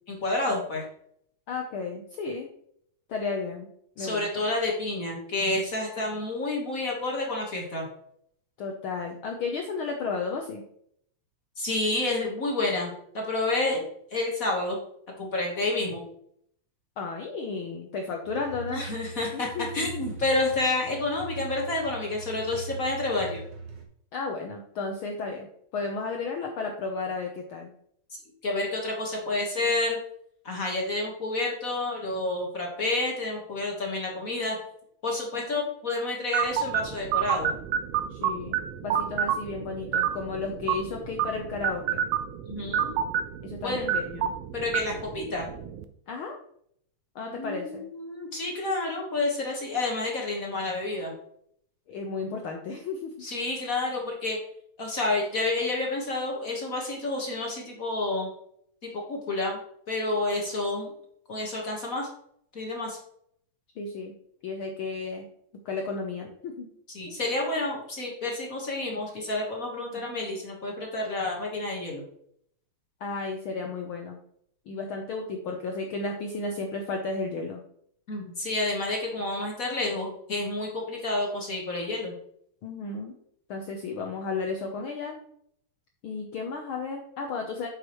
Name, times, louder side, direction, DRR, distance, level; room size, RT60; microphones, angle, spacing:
voice 1, 0.1-0.9 4.0-7.9 11.6-14.8 15.2-16.0 18.7-23.4 28.4-30.0 30.4-34.6 35.0-37.5 42.5-42.9 43.6-43.9 44.5-45.5 47.3-51.1 53.2-54.4 54.8-58.3 58.9-59.6 59.9-60.9 61.3-62.1 62.5-63.0 66.9-72.0 78.1-82.1, left 2 dB, 40° left, 0 dB, 1.2 m, -29 dB
voice 2, 1.5-2.5 3.1-3.7 4.0-4.4 8.6-10.6 17.0-18.9 19.3-19.9 24.1-25.5 25.7-27.7 38.1-42.0 43.4-44.3 46.1-46.4 47.1-47.9 51.9-53.1 63.8-64.1 64.4-65.3 65.6-66.7 67.1-67.2 73.0-74.2 74.7-77.6 82.6-83.1 83.5-85.2 86.0-87.7, left 4 dB, 75° left, 2 dB, 1.2 m, -33 dB
sound 1, 18.2-23.9, right 4 dB, 60° right, 2.2 m, -41 dB
sound 2, 36.3-45.8, right 8 dB, 85° right, 1.3 m, -29 dB
8.7 x 6.7 x 3.1 m, 0.68 s
omnidirectional pair, 3.3 m